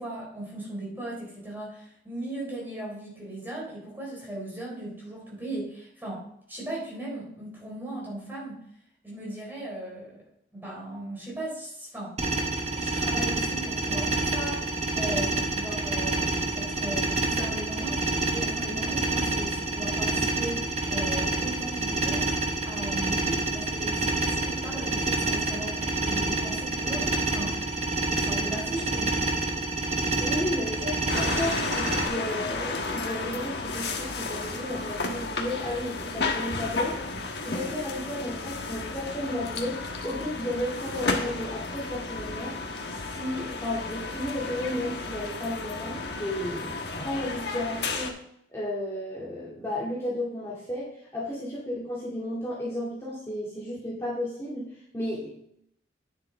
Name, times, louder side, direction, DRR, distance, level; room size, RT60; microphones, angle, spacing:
voice 1, 0.0-8.6 9.0-10.2 10.5-12.2 12.7-22.3 22.6-27.7 28.2-29.2, right 1 dB, 10° right, -4 dB, 4.1 m, -37 dB
sound 1, 12.2-32.1, right 2 dB, 35° right, 1.1 m, -28 dB
voice 2, 30.2-37.0 37.4-42.6 42.9-48.1 48.5-55.4, left 1 dB, 15° left, -8 dB, 2.2 m, -33 dB
sound 2, 31.1-48.1, left 3 dB, 65° left, 1.3 m, -33 dB
9.7 x 7.5 x 3.4 m, 0.71 s
head